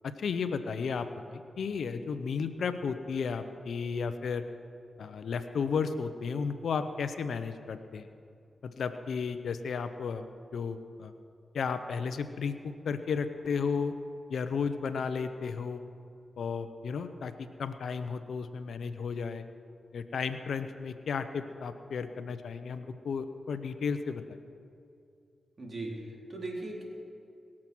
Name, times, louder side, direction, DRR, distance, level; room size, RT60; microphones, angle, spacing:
voice 1, 0.0-4.4 5.0-8.1 8.6-10.2 10.5-11.1 11.5-13.9 14.3-15.8 16.4-19.4 19.9-24.2, left 5 dB, 75° left, 10 dB, 0.8 m, -33 dB
voice 2, 25.6-26.8, right 2 dB, 50° right, -1 dB, 3.9 m, -38 dB
22.0 x 7.5 x 6.2 m, 2.6 s
supercardioid pair, 45°, 0 cm